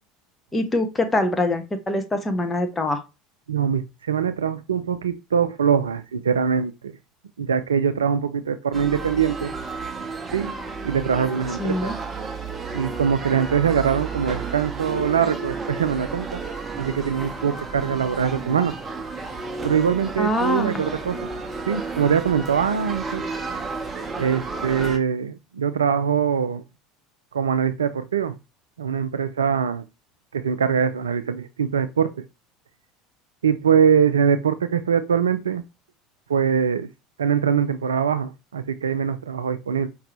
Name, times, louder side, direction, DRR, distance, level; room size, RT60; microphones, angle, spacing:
voice 1, 0.5-3.0 11.6-12.0 20.2-20.8, left 1 dB, 15° left, 1.0 m, -24 dB
voice 2, 3.5-7.0 7.4-9.5 10.3-10.5 10.8-11.9 12.7-16.4 16.8-18.7 19.6-21.3 21.7-23.2 24.2-26.6 27.3-28.4 28.8-29.8 30.3-32.1 33.4-35.6 36.3-36.9 37.2-39.9, right 7 dB, 75° right, 0.3 m, -23 dB
sound 1, 8.7-25.0, right 4 dB, 20° right, 0.9 m, -32 dB
5.1 x 2.8 x 3.3 m
figure-of-eight pair, 70°, 0 cm